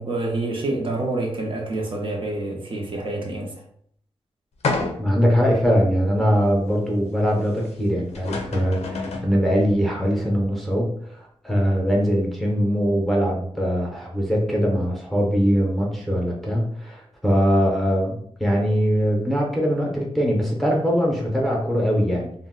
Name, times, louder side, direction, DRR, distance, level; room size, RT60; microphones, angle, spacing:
voice 1, 0.0-3.5, right 2 dB, 55° right, 0.6 m, -27 dB
sound 1, 4.6-5.3 5.9-6.0 7.8-7.9 8.1-9.3, left 3 dB, 90° left, 0.5 m, -28 dB
voice 2, 5.0-22.3, equal, ahead, 0.7 m, -22 dB
2.5 x 2.1 x 3.7 m
wide cardioid pair, 130°, 11 cm